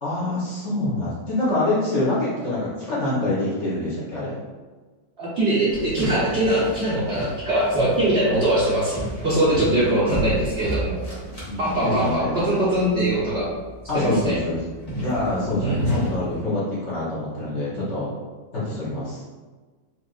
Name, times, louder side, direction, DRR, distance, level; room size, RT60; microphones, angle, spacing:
voice 1, 0.0-4.3 9.6-9.9 11.4-12.4 13.9-14.6 15.0-18.1 18.5-19.2, left 2 dB, 50° left, -9 dB, 0.9 m, -25 dB
voice 2, 5.2-9.0 9.2-11.0 11.6-13.5 13.9-14.4 15.6-16.0, right 1 dB, 65° right, -8 dB, 0.6 m, -22 dB
sound 1, 5.7-16.4, equal, 15° left, 1.0 m, -33 dB
4.4 x 2.5 x 2.4 m, 1.3 s
omnidirectional pair, 2.0 m